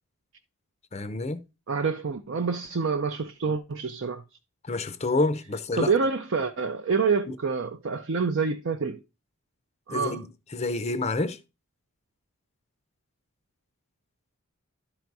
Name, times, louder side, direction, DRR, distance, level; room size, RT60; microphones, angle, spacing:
voice 1, 0.9-1.4 4.7-5.9 9.9-10.3 10.5-11.4, left 2 dB, 30° left, 0.5 m, -28 dB
voice 2, 1.7-4.2 5.7-9.0 9.9-10.2, right 5 dB, 55° right, 0.5 m, -27 dB
11.5 x 3.9 x 4.7 m
head